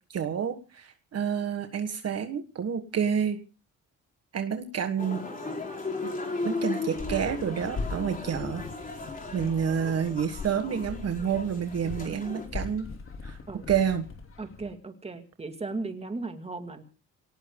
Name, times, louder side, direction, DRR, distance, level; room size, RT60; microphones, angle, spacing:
voice 1, 0.1-3.4 4.3-5.2 6.4-8.6 9.3-12.9 13.2-13.4 13.7-14.1, right 7 dB, 55° right, 8 dB, 1.6 m, -29 dB
sound 1, 5.0-12.5, left 3 dB, 25° left, 4.2 m, -36 dB
sound 2, 7.0-14.7, left 4 dB, 45° left, 3.3 m, -40 dB
voice 2, 14.4-16.8, right 3 dB, 20° right, 7 dB, 2.2 m, -36 dB
27.0 x 18.5 x 2.3 m, 0.32 s
cardioid pair, 90°, 30 cm